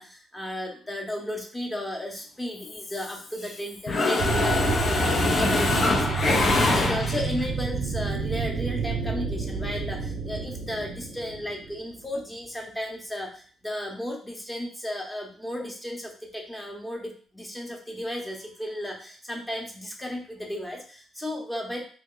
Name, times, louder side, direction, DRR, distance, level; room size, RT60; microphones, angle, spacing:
voice 1, 0.0-21.8, left 1 dB, 10° left, 1 dB, 0.9 m, -34 dB
Mechanisms, 2.6-3.6 3.9-7.4, left 3 dB, 45° left, 0.6 m, -24 dB
sound 1, 4.2-11.9, right 5 dB, 70° right, 0.6 m, -30 dB
3.0 x 2.2 x 3.8 m, 0.42 s
cardioid pair, 90°, 0 cm